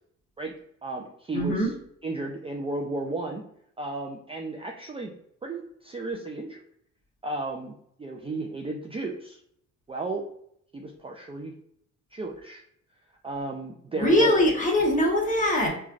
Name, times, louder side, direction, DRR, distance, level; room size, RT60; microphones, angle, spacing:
voice 1, 0.8-1.7 2.0-3.4 3.8-5.1 5.4-6.6 7.2-9.4 9.9-10.2 10.7-11.5 12.1-12.6 13.2-14.3, right 2 dB, 20° right, 0 dB, 0.3 m, -34 dB
voice 2, 1.3-1.7 14.0-15.7, left 1 dB, 25° left, -2 dB, 1.0 m, -22 dB
3.1 x 2.3 x 2.4 m, 0.70 s
cardioid pair, 90°, 30 cm